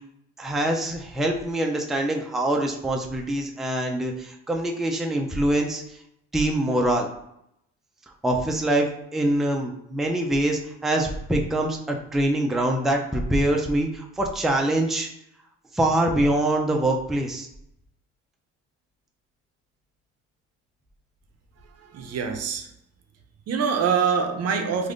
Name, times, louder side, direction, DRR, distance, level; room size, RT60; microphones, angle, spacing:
voice 1, 0.4-5.8 6.3-7.1 8.2-15.1 15.7-17.5, right 1 dB, ahead, 1 dB, 0.4 m, -24 dB
voice 2, 21.8-22.7 23.5-24.9, right 6 dB, 55° right, 5 dB, 0.6 m, -25 dB
3.3 x 2.5 x 2.5 m, 0.77 s
supercardioid pair, 70°, 32 cm